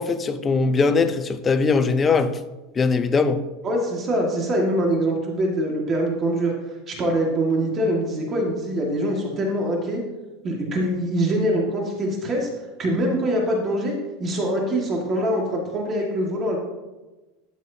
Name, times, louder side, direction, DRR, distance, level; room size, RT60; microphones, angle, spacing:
voice 1, 0.0-2.4 2.8-3.4, left 4 dB, 20° left, 0.5 m, -20 dB
voice 2, 3.6-6.5 6.9-10.0 10.4-12.5 12.8-13.9 14.2-16.6, right 1 dB, 25° right, 1.8 m, -23 dB
12.5 x 8.1 x 2.8 m
supercardioid pair, 150°, 0 cm